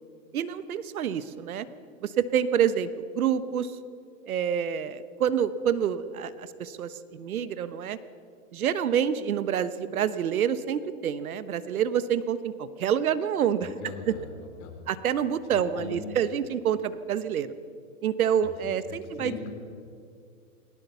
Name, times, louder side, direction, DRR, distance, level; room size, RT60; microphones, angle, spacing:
voice 1, 0.3-1.6 2.0-2.9 3.1-3.7 4.3-8.0 8.5-14.1 14.9-17.5 18.0-19.5, right 8 dB, 80° right, 14 dB, 1.2 m, -27 dB
voice 2, 13.6-14.3 14.6-14.8 15.5-16.0 18.4-19.5, left 5 dB, 40° left, 3 dB, 4.8 m, -40 dB
20.5 x 18.5 x 7.1 m, 2.3 s
hypercardioid pair, 115°, 42 cm